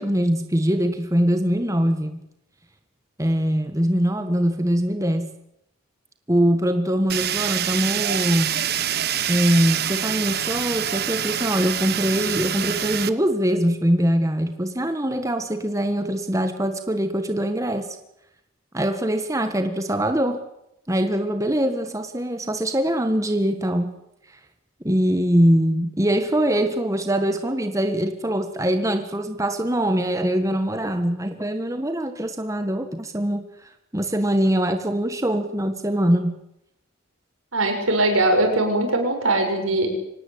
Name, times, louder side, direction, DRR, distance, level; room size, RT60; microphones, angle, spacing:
voice 1, 0.0-2.2 3.2-5.3 6.3-8.5 9.3-17.9 18.7-20.4 20.9-23.9 24.8-33.4 33.9-36.4, equal, 15° right, 8 dB, 1.5 m, -22 dB
Fire, 7.1-13.1, right 10 dB, 50° right, 1.2 m, -26 dB
voice 2, 37.5-40.0, right 2 dB, 80° right, 4 dB, 6.8 m, -21 dB
25.5 x 18.5 x 8.5 m, 0.82 s
head